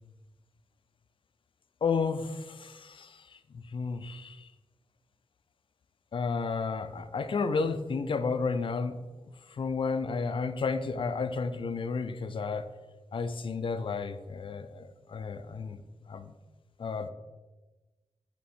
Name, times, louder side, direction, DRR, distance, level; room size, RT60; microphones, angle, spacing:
voice 1, 1.8-4.5 6.1-12.7 13.1-15.8 16.1-16.3 16.8-17.1, left 4 dB, 50° left, 11 dB, 0.4 m, -32 dB
7.4 x 3.6 x 4.2 m, 1.2 s
wide cardioid pair, 155°, 11 cm